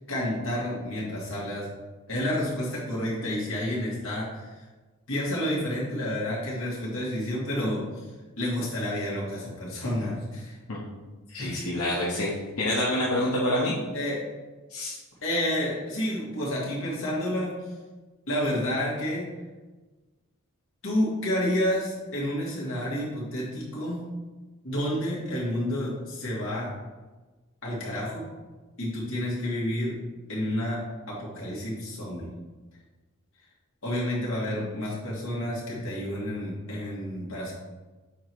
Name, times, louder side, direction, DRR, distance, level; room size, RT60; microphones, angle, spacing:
voice 1, 0.0-1.7 2.1-4.7 5.1-8.1 8.4-10.6 11.4-11.6 13.9-14.2 15.2-17.7 18.3-19.3 20.8-24.0 24.6-26.7 27.6-28.3 28.8-29.9 30.3-30.8 31.1-32.3 33.8-37.5, left 1 dB, 65° left, -5 dB, 2.3 m, -30 dB
voice 2, 11.3-12.3 12.6-13.7 14.7-15.0, left 1 dB, 85° left, -7 dB, 1.2 m, -27 dB
7.2 x 3.9 x 4.7 m, 1.3 s
head